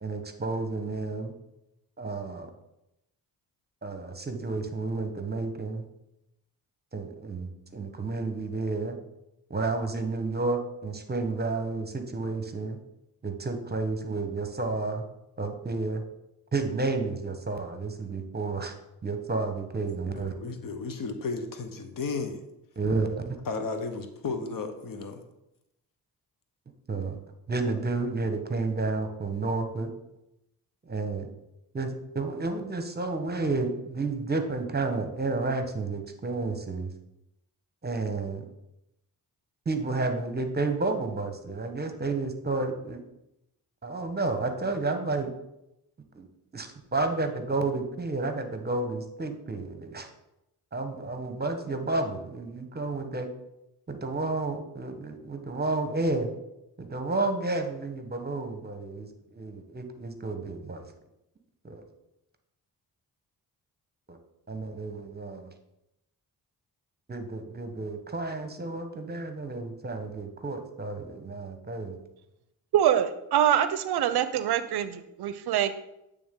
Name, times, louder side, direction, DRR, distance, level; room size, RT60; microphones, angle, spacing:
voice 1, 0.0-1.3 2.0-2.5 3.8-5.9 6.9-9.0 9.5-12.8 13.2-15.0 15.4-16.0 16.5-18.7 19.0-20.3 22.8-23.4 26.9-27.2 27.5-29.9 30.8-31.3 31.7-36.9 37.8-38.5 39.6-43.0 43.8-45.3 46.1-46.3 46.5-50.1 50.7-53.3 53.9-56.3 56.8-60.8 61.6-61.8 64.1-64.2 64.5-65.5 67.1-72.0, right 3 dB, 25° right, 7 dB, 1.0 m, -31 dB
voice 2, 20.1-22.4 23.5-25.2, left 4 dB, 55° left, 7 dB, 0.9 m, -34 dB
voice 3, 72.7-75.9, right 10 dB, 70° right, 12 dB, 0.5 m, -25 dB
8.6 x 3.4 x 3.6 m, 0.86 s
cardioid pair, 60°, 40 cm